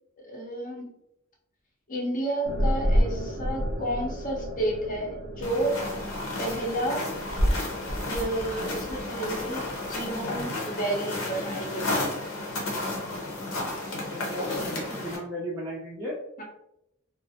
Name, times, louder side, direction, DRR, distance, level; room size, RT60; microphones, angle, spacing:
voice 1, 0.2-0.9 1.9-5.7 6.4-7.1 8.0-12.1 16.4-16.5, right 1 dB, 40° left, -2 dB, 0.6 m, -31 dB
sound 1, 2.4-10.4, equal, 60° right, 0.5 m, -30 dB
sound 2, 5.4-15.2, left 2 dB, 80° left, 0.7 m, -32 dB
voice 2, 14.1-16.1, equal, 10° right, -8 dB, 0.4 m, -35 dB
2.3 x 2.0 x 2.6 m, 0.83 s
head